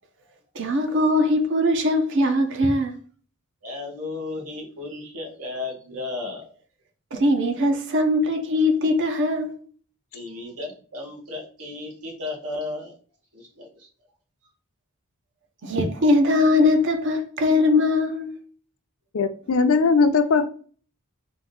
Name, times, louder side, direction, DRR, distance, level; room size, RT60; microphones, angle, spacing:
voice 1, 0.5-2.9 7.1-9.5 15.6-18.3, left 2 dB, 55° right, 0.8 m, -21 dB
voice 2, 3.6-6.5 10.1-13.0 13.3-13.9, left 2 dB, 85° right, 1.5 m, -34 dB
voice 3, 19.1-20.5, left 4 dB, 65° left, 0.5 m, -19 dB
3.7 x 2.6 x 3.7 m
head